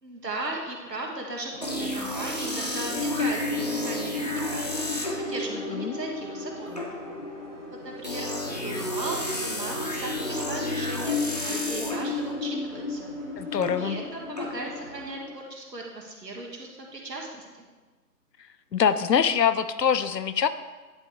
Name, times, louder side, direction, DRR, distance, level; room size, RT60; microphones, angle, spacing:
voice 1, 0.0-6.7 7.8-13.1 13.8-17.5, right 2 dB, 80° right, -1 dB, 1.8 m, -37 dB
sound 1, 1.5-15.1, right 2 dB, 35° right, 0.7 m, -50 dB
sound 2, 1.6-15.3, left 2 dB, 25° left, 0.6 m, -31 dB
sound 3, 7.8-12.6, equal, 5° right, 0.9 m, -49 dB
voice 2, 13.4-14.0 18.7-20.5, left 7 dB, 80° left, 12 dB, 0.6 m, -24 dB
10.0 x 3.5 x 4.4 m, 1.3 s
figure-of-eight pair, 145°, 49 cm